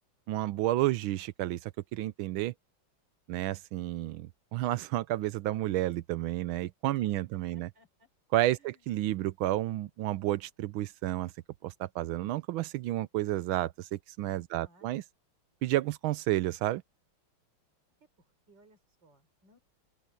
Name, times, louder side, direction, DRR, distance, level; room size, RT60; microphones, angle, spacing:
voice 1, 0.3-2.5 3.3-7.7 8.3-11.3 11.6-15.0 15.6-16.8, right 15 dB, 80° right, 1.4 m, -31 dB
voice 2, 7.0-8.1 8.6-8.8 14.5-15.0 18.5-19.6, right 1 dB, 60° right, 5.5 m, -63 dB
open air
omnidirectional pair, 2.2 m